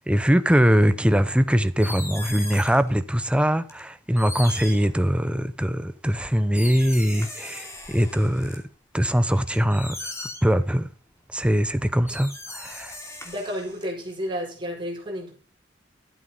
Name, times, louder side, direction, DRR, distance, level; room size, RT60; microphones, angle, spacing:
voice 1, 0.0-8.6 8.9-10.9 11.3-13.0, equal, 5° right, 0.7 m, -22 dB
sound 1, 1.5-2.9 3.7-3.8 4.2-5.4 6.1-8.6 9.0-10.6 11.7-11.8 12.1-14.1, left 2 dB, 15° left, 2.7 m, -38 dB
voice 2, 13.2-15.3, equal, 25° right, 4.7 m, -31 dB
12.5 x 8.3 x 5.5 m
head